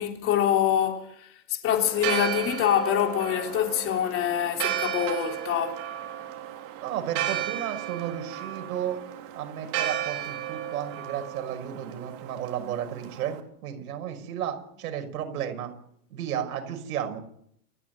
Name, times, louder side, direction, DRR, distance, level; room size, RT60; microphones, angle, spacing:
voice 1, 0.0-5.8, left 10 dB, 30° left, 3.6 m, -25 dB
Church bell, 1.8-13.4, right 11 dB, 40° right, 3.6 m, -34 dB
voice 2, 6.8-9.0 9.3-15.7 16.1-17.2, right 9 dB, 75° right, 6.0 m, -33 dB
29.5 x 11.0 x 9.3 m
supercardioid pair, 160°, 45 cm